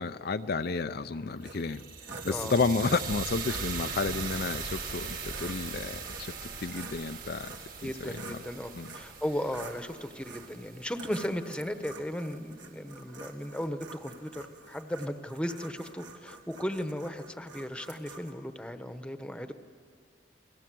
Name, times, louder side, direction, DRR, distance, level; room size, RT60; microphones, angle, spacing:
voice 1, 0.0-1.8 2.2-6.3 6.6-7.5 7.8-8.4 8.7-8.9, left 4 dB, 60° left, 9 dB, 0.6 m, -31 dB
sound 1, 1.4-11.5, right 5 dB, 50° right, 2.6 m, -40 dB
sound 2, 1.4-2.3 2.7-2.9 3.4-3.7 4.1-4.4 5.1-5.6 6.0-6.4 6.7-8.4 8.8-9.1 9.5-9.8 10.2-10.5 10.9-18.3, right 3 dB, 75° right, 2.8 m, -47 dB
voice 2, 2.3-2.6 7.8-19.5, equal, 5° left, 8 dB, 1.1 m, -36 dB
29.5 x 21.5 x 7.7 m, 2.2 s
head